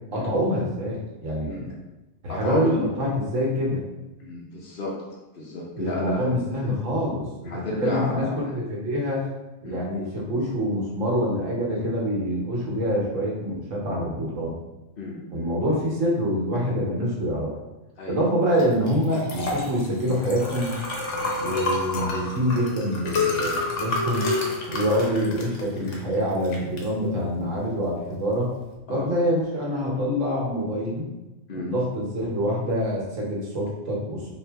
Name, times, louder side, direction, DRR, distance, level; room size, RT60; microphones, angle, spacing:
voice 1, 0.1-1.7 2.2-3.8 5.7-9.3 9.6-14.6 15.3-17.5 18.1-20.7 21.4-24.3 24.7-28.5 28.9-31.1 31.5-34.3, equal, 85° right, -3 dB, 1.4 m, -26 dB
voice 2, 2.3-2.9 4.2-5.0 5.3-6.8 7.5-8.4 9.6-9.8 15.0-15.5 18.0-18.2 28.9-29.1 31.5-31.7, left 2 dB, 50° left, -5 dB, 0.8 m, -32 dB
Liquid, 18.5-28.7, left 2 dB, 75° left, 1.2 m, -30 dB
4.3 x 2.8 x 3.4 m, 1.1 s
omnidirectional pair, 1.3 m